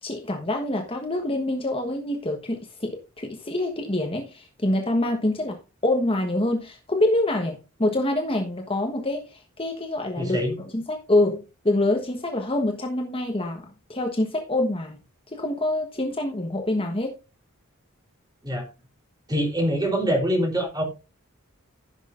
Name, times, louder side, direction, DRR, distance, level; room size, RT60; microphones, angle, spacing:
voice 1, 0.0-15.0 15.3-17.1, left 1 dB, 25° left, 1.2 m, -26 dB
voice 2, 10.2-10.6 18.4-18.7 19.3-20.8, equal, 15° right, 3.7 m, -24 dB
16.0 x 6.5 x 2.6 m
head